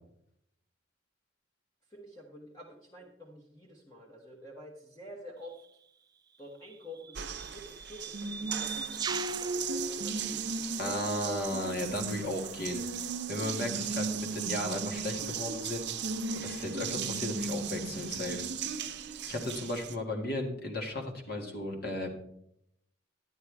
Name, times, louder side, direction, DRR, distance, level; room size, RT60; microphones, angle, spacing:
voice 1, 1.9-5.6 6.4-11.0 11.2-11.4, equal, 20° left, -1 dB, 1.2 m, -49 dB
sound 1, 5.5-5.6 6.7-10.9, right 6 dB, 20° right, 0.4 m, -41 dB
Water tap faucet, 7.1-19.9, right 5 dB, 60° right, 0.7 m, -36 dB
voice 2, 10.8-12.9 13.3-18.5 19.3-22.2, left 1 dB, 50° left, 2 dB, 1.9 m, -35 dB
11.5 x 9.7 x 3.4 m, 0.73 s
head